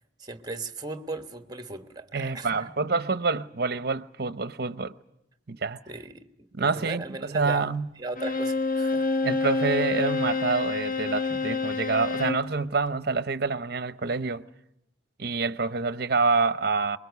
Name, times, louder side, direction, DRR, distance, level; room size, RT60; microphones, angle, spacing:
voice 1, 0.2-2.8 5.9-7.7 8.0-9.1, right 3 dB, 20° right, 1.3 m, -37 dB
voice 2, 2.1-5.0 5.5-5.8 6.5-7.9 9.2-14.4 15.2-17.0, right 4 dB, 60° right, 0.8 m, -27 dB
Bowed string instrument, 8.2-12.5, left 3 dB, 50° left, 1.1 m, -27 dB
24.0 x 22.0 x 8.2 m
head